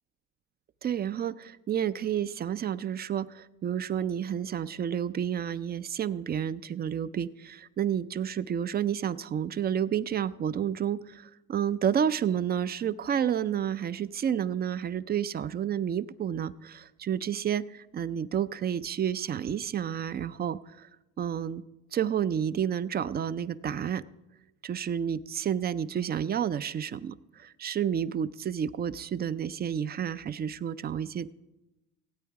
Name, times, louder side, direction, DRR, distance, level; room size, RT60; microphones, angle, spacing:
voice 1, 0.8-20.9 21.2-21.6 21.9-24.0 24.6-31.3, right 9 dB, 25° right, 16 dB, 0.4 m, -30 dB
17.0 x 8.5 x 4.7 m, 1.0 s
supercardioid pair, 90°, 37 cm